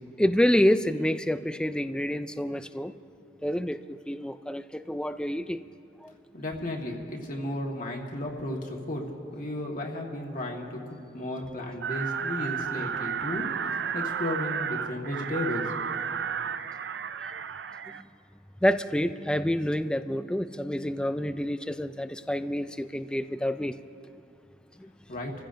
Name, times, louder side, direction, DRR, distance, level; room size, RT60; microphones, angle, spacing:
voice 1, 0.2-3.0 3.4-5.6 6.0-6.1 17.3-17.4 17.9-18.1 18.6-23.8 24.8-24.9, left 1 dB, 5° left, 11 dB, 0.3 m, -28 dB
voice 2, 6.3-9.1 9.3-13.5 13.9-15.7 25.1-25.3, left 1 dB, 50° left, 0 dB, 1.6 m, -34 dB
sound 1, 11.8-18.0, right 7 dB, 70° right, 0.4 m, -32 dB
27.5 x 15.0 x 2.6 m, 2.6 s
head